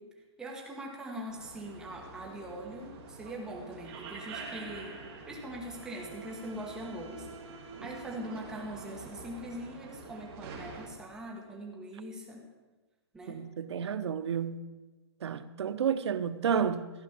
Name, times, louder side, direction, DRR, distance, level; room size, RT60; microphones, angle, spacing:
voice 1, 0.4-12.5 13.1-13.4, right 1 dB, 5° right, 1.3 m, -42 dB
sound 1, 1.3-10.9, right 4 dB, 25° right, 1.9 m, -46 dB
voice 2, 13.3-14.6 15.2-16.9, right 7 dB, 75° right, 0.8 m, -31 dB
15.0 x 5.2 x 8.6 m
hypercardioid pair, 175°, 14 cm